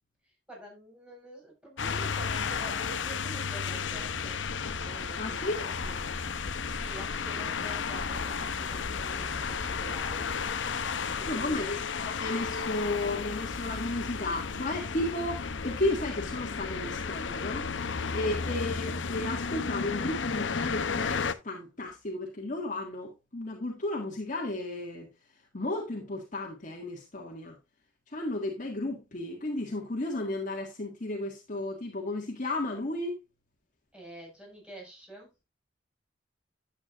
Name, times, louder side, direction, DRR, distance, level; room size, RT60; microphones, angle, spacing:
voice 1, 0.2-4.4 4.8-6.1 6.7-10.3 11.2-11.7 33.9-35.4, right 1 dB, 5° right, 5.6 m, -47 dB
sound 1, 1.8-21.3, left 5 dB, 85° left, 0.7 m, -33 dB
voice 2, 5.2-5.6 11.3-25.1 25.5-27.6 28.1-33.1, left 2 dB, 45° left, 1.8 m, -34 dB
11.0 x 8.6 x 2.5 m
head